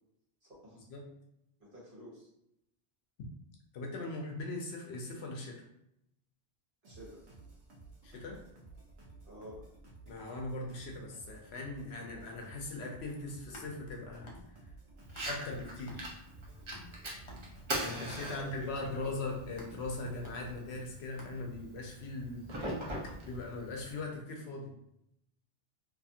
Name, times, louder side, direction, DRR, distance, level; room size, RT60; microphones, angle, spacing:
voice 1, 0.4-0.8 1.6-2.3 6.8-7.2 9.2-9.6 18.3-19.2, equal, 55° right, -6 dB, 1.3 m, -49 dB
voice 2, 3.7-5.6 8.0-8.4 10.1-14.3 15.3-16.1 17.8-22.5 23.3-24.7, left 2 dB, 80° left, 0 dB, 0.8 m, -40 dB
sound 1, 6.8-20.6, right 3 dB, 80° right, 1.0 m, -55 dB
sound 2, 13.3-15.6 15.9-21.8, left 1 dB, 35° left, 0.5 m, -54 dB
Fire, 15.0-24.0, right 1 dB, 35° right, 0.5 m, -42 dB
2.6 x 2.4 x 2.6 m, 0.80 s
omnidirectional pair, 1.1 m